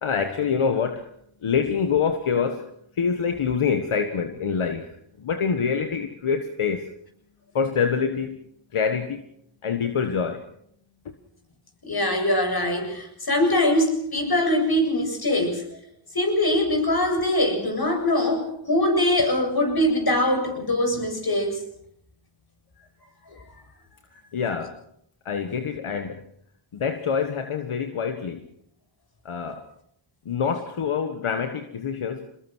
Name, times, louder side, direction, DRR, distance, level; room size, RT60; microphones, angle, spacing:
voice 1, 0.0-1.1 1.4-2.6 3.0-6.9 7.6-8.4 8.7-9.2 9.6-10.4 23.3-23.4 24.3-24.8 25.3-26.2 26.7-28.5 29.3-29.6 30.3-32.3, left 6 dB, 80° left, 7 dB, 1.6 m, -26 dB
voice 2, 11.8-15.6 16.1-21.6, left 1 dB, 45° left, 4 dB, 7.7 m, -22 dB
23.5 x 20.5 x 6.3 m, 0.70 s
cardioid pair, 40°, 49 cm